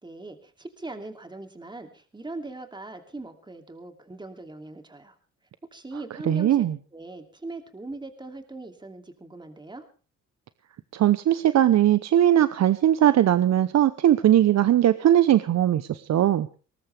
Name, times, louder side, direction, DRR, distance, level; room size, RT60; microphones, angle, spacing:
voice 1, 0.0-5.1 5.7-6.7 6.9-9.9, right 2 dB, 15° right, 6 dB, 2.7 m, -40 dB
voice 2, 6.3-6.8 10.9-16.5, right 11 dB, 60° right, 14 dB, 0.8 m, -20 dB
20.0 x 18.5 x 3.4 m, 0.36 s
cardioid pair, 90°, 30 cm